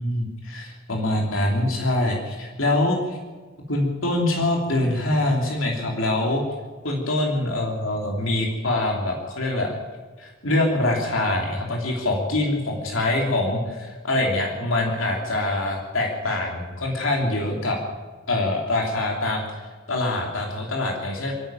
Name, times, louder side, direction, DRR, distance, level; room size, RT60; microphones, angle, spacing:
voice 1, 0.0-3.2 3.7-6.4 6.8-9.7 10.2-17.8 18.3-21.3, left 2 dB, 70° left, 0 dB, 3.2 m, -24 dB
29.0 x 10.5 x 9.1 m, 1.4 s
head